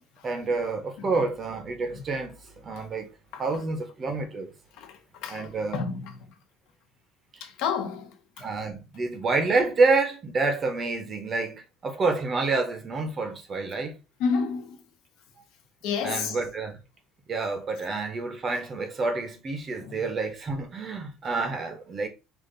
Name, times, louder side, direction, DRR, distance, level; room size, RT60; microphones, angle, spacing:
voice 1, 0.2-2.4 2.6-3.1 3.4-4.5 5.3-5.9 8.4-14.0 16.0-16.8 17.3-22.1, right 3 dB, 25° right, 0.7 m, -28 dB
voice 2, 4.8-6.1 7.4-8.4 14.2-14.8 15.8-16.4 19.8-20.0, left 6 dB, 65° left, 1.0 m, -30 dB
5.1 x 2.5 x 3.8 m
cardioid pair, 180°, 0 cm